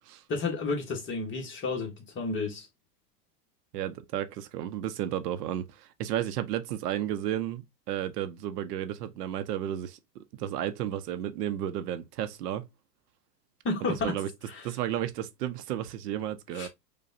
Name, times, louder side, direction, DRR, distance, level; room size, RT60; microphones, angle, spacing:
voice 1, 0.3-2.7 13.6-14.1 14.5-14.7 16.5-16.7, left 3 dB, 25° left, 1.1 m, -31 dB
voice 2, 3.7-10.0 10.3-12.6 14.0-14.3 14.6-16.7, right 11 dB, 70° right, 0.7 m, -33 dB
4.9 x 2.3 x 2.5 m
hypercardioid pair, 115°, 50 cm